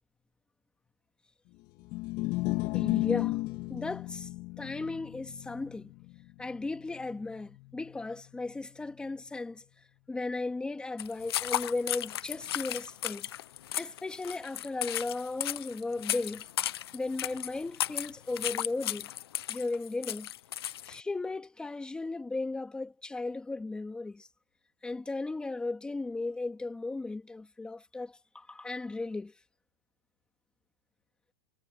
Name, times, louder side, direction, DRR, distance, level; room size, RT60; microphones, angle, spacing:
sound 1, 1.8-8.2, left 20 dB, 40° left, 2.6 m, -34 dB
voice 1, 2.7-3.4 3.7-4.3 4.6-5.9 6.4-9.6 10.1-13.3 13.8-16.4 16.9-19.1 19.5-20.3 20.9-24.3 24.8-29.3, left 3 dB, 5° left, 2.3 m, -36 dB
sound 2, 11.0-21.0, left 12 dB, 80° left, 1.0 m, -35 dB
supercardioid pair, 150°, 13 cm